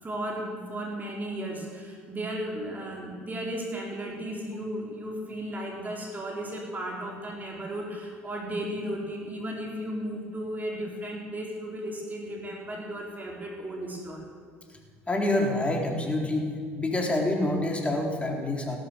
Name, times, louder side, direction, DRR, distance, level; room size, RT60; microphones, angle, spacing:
voice 1, 0.0-14.2, right 1 dB, 25° right, -1 dB, 4.5 m, -35 dB
voice 2, 15.1-16.5 16.8-18.8, left 1 dB, 20° left, 1 dB, 3.9 m, -27 dB
16.0 x 13.0 x 6.6 m, 2.1 s
hypercardioid pair, 65°, 7 cm